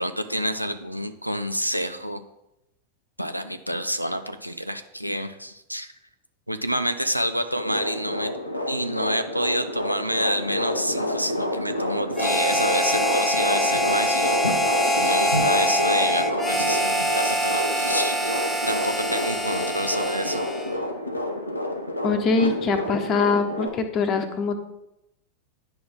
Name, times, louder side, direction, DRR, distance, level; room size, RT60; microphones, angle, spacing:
voice 1, 0.0-2.2 3.2-5.9 6.5-8.4 8.7-14.4 14.8-18.3 18.7-20.4, equal, 90° right, 9 dB, 0.5 m, -28 dB
sound 1, 7.5-23.7, left 1 dB, 85° left, 1.0 m, -29 dB
Harmonica, 12.1-20.8, equal, 5° left, 1.1 m, -24 dB
voice 2, 22.0-24.6, left 4 dB, 30° left, 7 dB, 1.0 m, -23 dB
9.6 x 6.1 x 3.7 m, 0.86 s
figure-of-eight pair, 90°, 0 cm